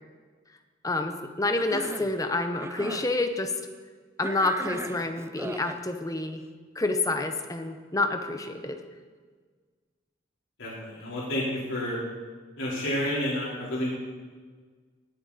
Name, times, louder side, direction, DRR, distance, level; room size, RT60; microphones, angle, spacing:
voice 1, 0.8-3.5 4.2-6.4 6.7-8.8, left 2 dB, 20° left, 6 dB, 0.8 m, -28 dB
Cough, 1.6-2.2 2.5-3.1 4.2-5.8, right 2 dB, 15° right, 0.3 m, -37 dB
voice 2, 10.6-12.0 12.6-13.9, left 1 dB, 90° left, -7 dB, 4.0 m, -30 dB
18.5 x 7.5 x 4.2 m, 1.5 s
head